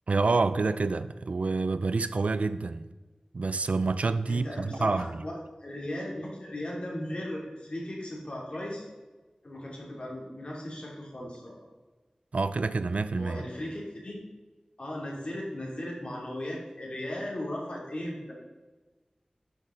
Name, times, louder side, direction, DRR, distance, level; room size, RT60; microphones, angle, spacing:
voice 1, 0.1-2.9 3.3-5.2 12.3-13.4, right 3 dB, 85° right, 0.4 m, -28 dB
voice 2, 4.3-8.8 9.4-11.5 13.2-14.2 14.8-18.3, left 1 dB, 55° left, 2.9 m, -37 dB
12.0 x 6.3 x 3.8 m
wide cardioid pair, 65°, 2 cm